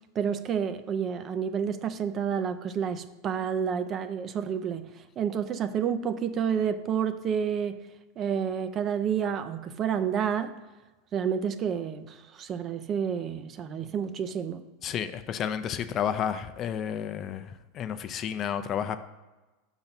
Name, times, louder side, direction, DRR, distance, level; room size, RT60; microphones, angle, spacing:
voice 1, 0.1-7.8 8.2-10.5 11.1-14.6, right 7 dB, 35° right, 0.5 m, -29 dB
voice 2, 14.8-19.0, left 8 dB, 35° left, 0.5 m, -31 dB
5.7 x 3.9 x 5.9 m
hypercardioid pair, 115°, 0 cm